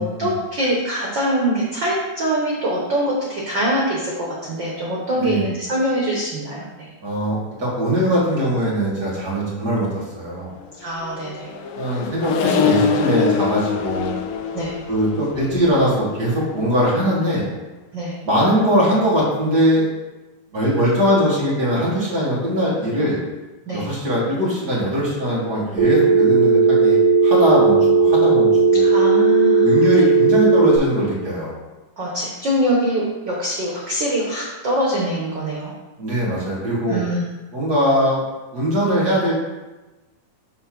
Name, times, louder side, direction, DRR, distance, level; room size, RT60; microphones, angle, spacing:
voice 1, 0.0-6.9 10.8-11.5 14.5-14.8 17.9-18.2 23.7-23.9 28.7-30.0 32.0-35.7 36.9-37.2, right 1 dB, 90° right, -4 dB, 1.0 m, -23 dB
voice 2, 7.0-10.5 11.7-14.1 14.9-17.5 18.2-19.9 20.5-23.2 23.7-27.0 27.2-28.8 29.6-31.5 36.0-37.0 37.5-38.2 38.5-39.3, equal, 35° right, -7 dB, 2.0 m, -21 dB
Accelerating revving vroom, 10.8-17.5, left 7 dB, 80° left, 2.0 m, -25 dB
Telephone, 25.8-30.8, right 4 dB, 50° right, 1.9 m, -15 dB
6.6 x 3.4 x 5.9 m, 1.1 s
omnidirectional pair, 3.9 m